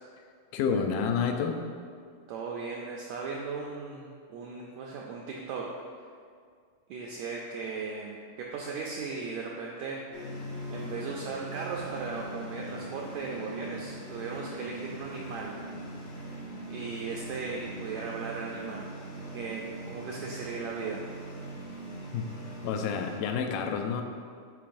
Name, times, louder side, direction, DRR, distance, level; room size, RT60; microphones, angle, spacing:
voice 1, 0.5-1.6 22.1-22.2 22.6-24.0, left 6 dB, 85° left, 5 dB, 2.2 m, -29 dB
voice 2, 2.3-5.7 6.9-10.0 10.7-15.6 16.7-18.9 19.3-21.0, right 4 dB, 85° right, -2 dB, 1.6 m, -37 dB
sound 1, 10.1-23.2, right 1 dB, 70° left, 2.8 m, -41 dB
10.5 x 4.7 x 2.6 m, 2.1 s
omnidirectional pair, 3.7 m